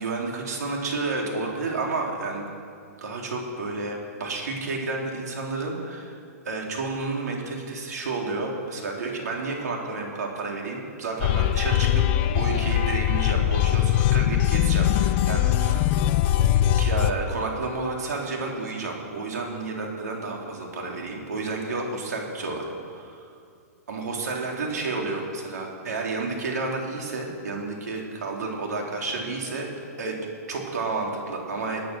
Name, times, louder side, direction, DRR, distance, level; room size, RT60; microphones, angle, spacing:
voice 1, 0.0-2.5 3.0-6.2 6.4-12.1 12.3-15.9 16.8-22.6 22.9-23.3 23.9-30.2 30.5-31.8, right 3 dB, 85° right, -1 dB, 3.9 m, -31 dB
sound 1, 11.2-17.1, left 12 dB, 40° left, 0.6 m, -21 dB
24.5 x 9.3 x 6.3 m, 2.4 s
hypercardioid pair, 145°, 9 cm